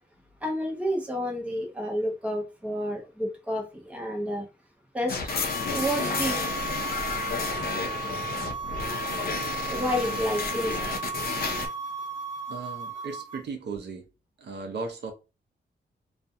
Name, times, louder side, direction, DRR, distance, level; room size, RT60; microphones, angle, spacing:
voice 1, 0.4-4.5 4.9-5.3 5.7-6.4 9.7-10.9, equal, 5° right, 0.7 m, -30 dB
sound 1, 5.1-11.7, left 4 dB, 55° left, 0.5 m, -31 dB
sound 2, 5.3-13.4, right 5 dB, 15° left, 1.0 m, -35 dB
voice 2, 12.5-14.1 14.4-15.1, right 4 dB, 65° right, 0.6 m, -36 dB
2.4 x 2.1 x 2.6 m
wide cardioid pair, 170°, 19 cm